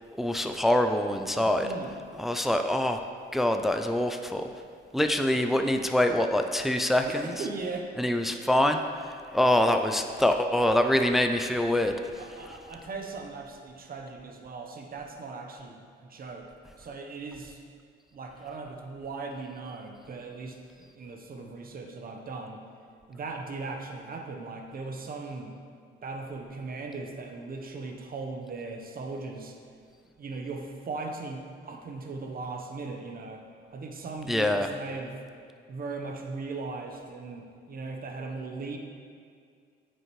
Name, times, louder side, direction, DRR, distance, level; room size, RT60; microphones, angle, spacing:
voice 1, 0.2-1.7 2.2-3.0 3.3-4.5 4.9-7.3 8.0-8.8 9.3-12.0 34.3-34.7, left 1 dB, ahead, 6 dB, 0.4 m, -24 dB
voice 2, 1.4-2.0 7.1-7.9 12.2-16.5 16.8-17.6 18.1-22.7 23.1-25.5 26.0-29.6 30.2-33.4 33.7-35.2 35.7-38.8, right 3 dB, 50° right, 3 dB, 1.0 m, -38 dB
9.1 x 6.5 x 3.1 m, 2.2 s
cardioid pair, 90°, 20 cm